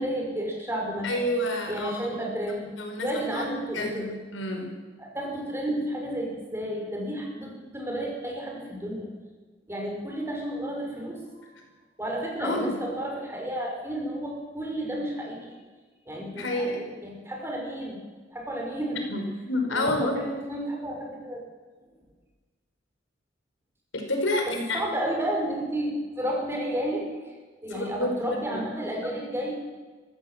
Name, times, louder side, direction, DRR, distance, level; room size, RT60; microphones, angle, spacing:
voice 1, 0.0-1.1 1.7-2.7 3.0-4.1 5.0-9.1 9.7-11.6 12.0-15.6 16.1-16.7 17.0-18.0 18.3-19.0 19.7-21.4 24.7-27.1 27.6-29.5, right 1 dB, 15° right, -1 dB, 5.6 m, -31 dB
voice 2, 1.0-3.4 3.7-4.7 12.4-12.8 16.3-16.8 19.1-20.2 23.9-24.8 27.7-28.1 28.5-28.6, left 1 dB, 80° left, 3 dB, 5.1 m, -29 dB
24.0 x 15.5 x 7.5 m, 1.3 s
head